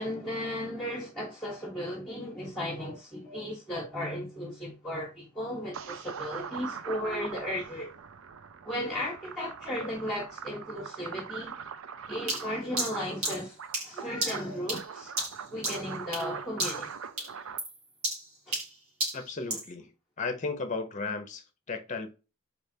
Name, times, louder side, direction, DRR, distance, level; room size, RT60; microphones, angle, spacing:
voice 1, 0.0-7.9 8.6-11.5 12.1-13.6 13.8-15.1 15.5-16.9 18.5-18.6, equal, 5° left, 1.0 m, -35 dB
sound 1, 5.7-17.6, right 6 dB, 65° right, 0.4 m, -42 dB
sound 2, 12.3-16.3 16.6-16.9 17.2-19.7, right 2 dB, 85° right, 2.4 m, -33 dB
voice 2, 19.1-22.1, left 4 dB, 35° left, 0.7 m, -35 dB
4.3 x 3.3 x 2.7 m
head